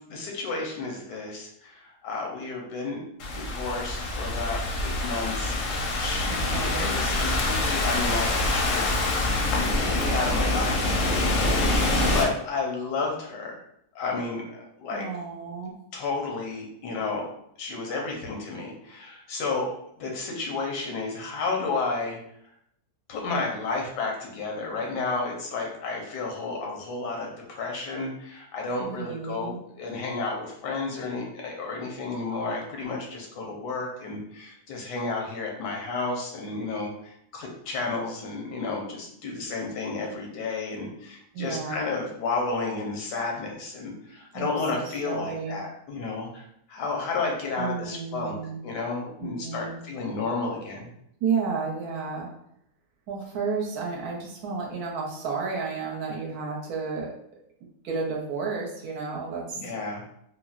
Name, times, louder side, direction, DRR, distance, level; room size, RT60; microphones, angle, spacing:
voice 1, 0.1-3.1 3.3-8.9 9.7-13.6 13.9-15.1 15.9-17.3 17.6-22.2 23.1-48.4 48.6-50.9 59.5-60.0, left 3 dB, 90° left, 0 dB, 1.3 m, -32 dB
Thunderstorm / Rain, 3.2-12.2, left 2 dB, 65° left, 0.8 m, -25 dB
voice 2, 6.2-6.9 11.7-12.2 14.9-15.7 28.8-29.6 41.3-41.8 44.3-45.6 47.6-48.6 49.2-49.8 51.2-52.3 53.1-57.1 57.8-59.4, right 5 dB, 70° right, -2 dB, 1.1 m, -32 dB
3.9 x 2.0 x 2.3 m, 0.74 s
omnidirectional pair, 1.8 m